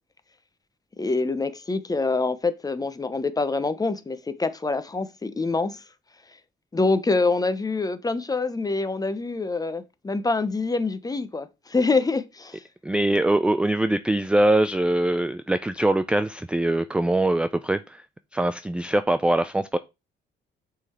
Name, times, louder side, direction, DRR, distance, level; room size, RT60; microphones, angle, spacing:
voice 1, 1.0-5.8 6.7-12.6, left 3 dB, 20° left, 0.7 m, -25 dB
voice 2, 12.8-18.1 18.3-19.8, right 1 dB, 5° right, 0.3 m, -22 dB
5.8 x 3.9 x 4.3 m
cardioid pair, 90°, 20 cm